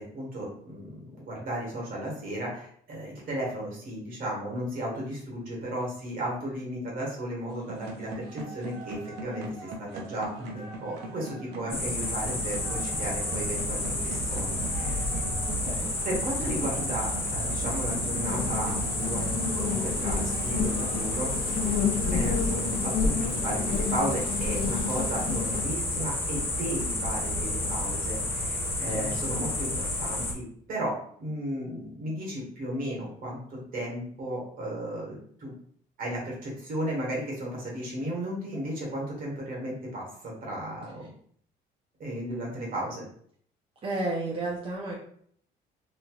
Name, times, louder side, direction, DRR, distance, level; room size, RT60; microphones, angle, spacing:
voice 1, 0.0-15.1 16.0-21.3 22.1-35.5 36.0-41.1 42.0-43.0, right 1 dB, 55° right, -3 dB, 1.5 m, -34 dB
sound 1, 7.5-23.6, right 2 dB, 85° right, 0.6 m, -41 dB
sound 2, 11.7-30.3, left 1 dB, 15° left, 0.7 m, -30 dB
voice 2, 15.5-15.9 28.9-29.4 43.8-45.0, right 2 dB, 35° right, -3 dB, 0.6 m, -33 dB
sound 3, 18.2-25.6, left 5 dB, 60° left, 0.6 m, -31 dB
3.2 x 2.5 x 2.4 m, 0.62 s
cardioid pair, 110°, 17 cm